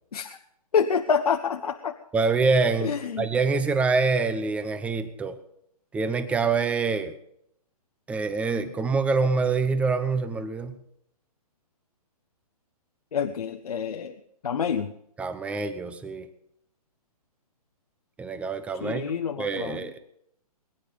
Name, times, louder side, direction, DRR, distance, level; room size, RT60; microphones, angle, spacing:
voice 1, 0.7-1.9 2.8-3.3 13.1-14.1 14.4-14.9 18.8-19.8, left 6 dB, 75° left, 6 dB, 1.2 m, -27 dB
voice 2, 2.1-5.4 5.9-7.1 8.1-10.8 15.2-16.3 18.2-19.1 19.4-20.0, right 4 dB, 5° right, 10 dB, 0.9 m, -25 dB
22.0 x 10.0 x 5.3 m, 0.73 s
hypercardioid pair, 155°, 20 cm